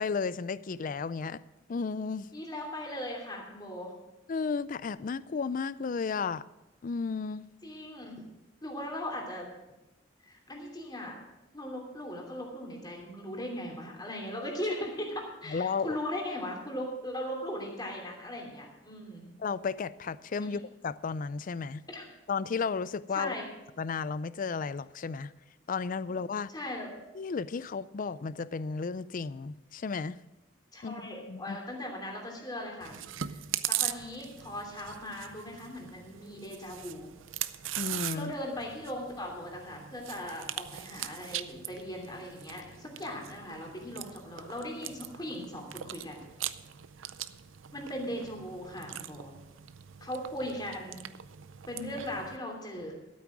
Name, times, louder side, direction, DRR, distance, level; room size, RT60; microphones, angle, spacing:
voice 1, 0.0-1.4 1.7-2.3 4.3-6.4 6.8-7.4 15.5-16.0 19.4-21.8 22.3-23.3 23.8-25.3 25.7-26.5 27.1-30.2 30.8-31.0 31.3-31.6 37.8-38.3, left 5 dB, 45° left, 17 dB, 0.4 m, -33 dB
voice 2, 2.3-3.9 7.6-8.1 8.6-9.5 10.2-11.2 11.5-19.2 21.9-22.0 23.1-23.4 26.5-26.9 30.7-33.0 33.2-33.4 33.7-37.1 38.1-46.2 47.7-49.3 50.0-51.0 51.7-52.9, left 1 dB, 20° left, 0 dB, 3.0 m, -38 dB
Chewing mastication, 32.8-52.4, right 12 dB, 85° right, 0.5 m, -40 dB
13.0 x 8.6 x 6.1 m, 1.0 s
head